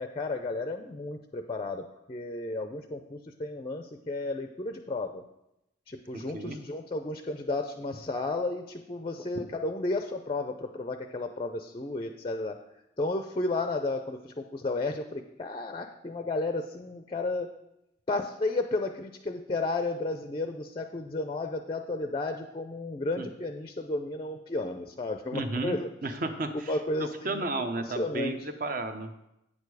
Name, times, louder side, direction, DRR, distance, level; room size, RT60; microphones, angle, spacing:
voice 1, 0.0-5.2 5.9-12.6 13.0-17.5 18.1-25.9 26.7-27.4 27.8-28.4, left 2 dB, 25° left, 6 dB, 0.4 m, -33 dB
voice 2, 6.1-6.6 23.2-23.3 25.3-26.7 27.0-29.1, right 2 dB, 45° right, 7 dB, 0.8 m, -33 dB
8.6 x 6.7 x 4.7 m, 0.86 s
head